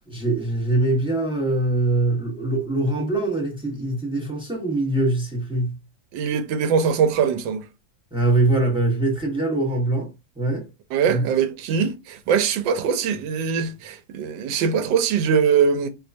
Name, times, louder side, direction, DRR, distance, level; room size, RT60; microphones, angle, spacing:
voice 1, 0.1-5.7 8.1-10.1 10.4-10.7 11.1-11.2, right 2 dB, 5° right, 0.5 m, -23 dB
voice 2, 6.1-7.6 10.9-15.9, right 6 dB, 80° right, 1.3 m, -22 dB
4.4 x 2.3 x 2.6 m
omnidirectional pair, 2.0 m